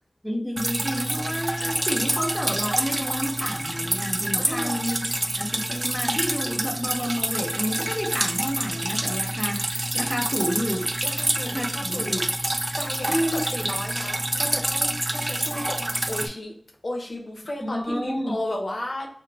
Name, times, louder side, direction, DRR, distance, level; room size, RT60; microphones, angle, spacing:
voice 1, 0.2-10.9 11.4-12.2 13.1-13.4 17.6-18.4, equal, 15° left, 1 dB, 0.7 m, -30 dB
Drip, 0.6-16.3, right 1 dB, 40° right, 0.3 m, -27 dB
voice 2, 4.4-4.7 11.0-12.2 12.7-16.5 16.8-19.1, left 1 dB, 80° left, 1 dB, 0.6 m, -34 dB
2.4 x 2.0 x 3.0 m, 0.63 s
wide cardioid pair, 45°, 0 cm